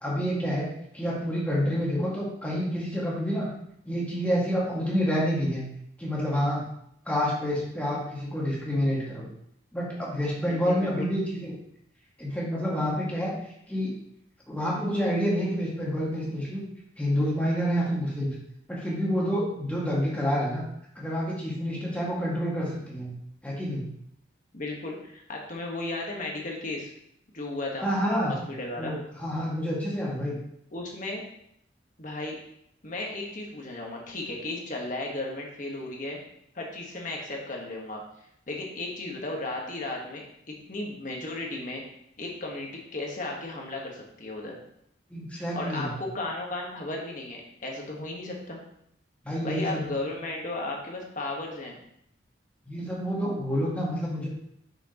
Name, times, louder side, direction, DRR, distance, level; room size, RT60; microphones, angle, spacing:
voice 1, 0.0-3.5 3.8-5.6 6.0-6.6 7.1-9.3 9.7-11.5 12.2-13.3 13.7-13.9 14.5-16.6 17.0-18.3 18.7-20.6 21.0-23.1 23.4-23.8 27.8-28.3 28.8-30.4 45.1-45.9 49.3-49.9 52.7-54.3, equal, 5° left, -6 dB, 1.9 m, -28 dB
voice 2, 10.4-11.1 24.5-26.9 27.3-27.9 28.3-28.9 30.7-31.2 32.0-32.4 32.8-36.2 36.5-38.0 38.5-41.8 42.2-44.6 45.5-48.6 49.4-51.8, left 2 dB, 40° left, -1 dB, 1.4 m, -35 dB
6.4 x 6.2 x 3.0 m, 0.73 s
head